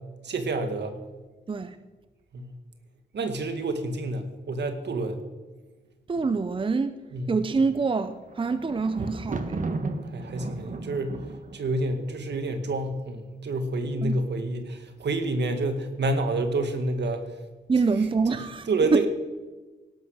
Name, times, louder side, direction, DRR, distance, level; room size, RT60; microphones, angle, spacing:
voice 1, 0.2-1.0 2.3-2.5 3.1-5.2 7.1-7.3 10.1-11.2 11.5-17.2 18.7-19.1, right 2 dB, 70° right, 7 dB, 2.0 m, -28 dB
voice 2, 6.1-6.9 7.3-9.6 14.0-14.1 17.7-19.0, right 4 dB, 30° right, 11 dB, 0.6 m, -25 dB
Thunder, 8.1-13.1 13.8-14.3 14.6-14.7, right 3 dB, 45° right, 1.4 m, -35 dB
17.5 x 12.0 x 6.5 m, 1.3 s
wide cardioid pair, 120°, 19 cm